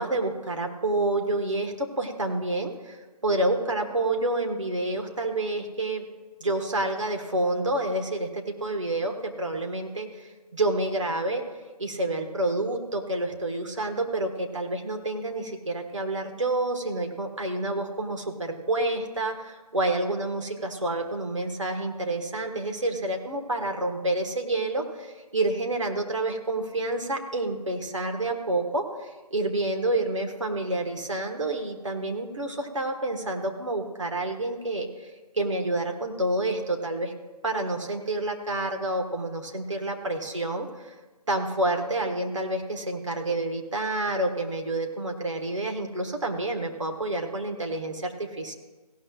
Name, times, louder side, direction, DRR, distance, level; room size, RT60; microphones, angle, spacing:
voice 1, 0.0-6.0 6.4-11.4 11.8-35.1 35.3-37.1 37.4-40.9 41.3-48.5, right 2 dB, 50° right, 3 dB, 1.6 m, -28 dB
16.5 x 12.0 x 2.4 m, 1.2 s
figure-of-eight pair, 160°, 21 cm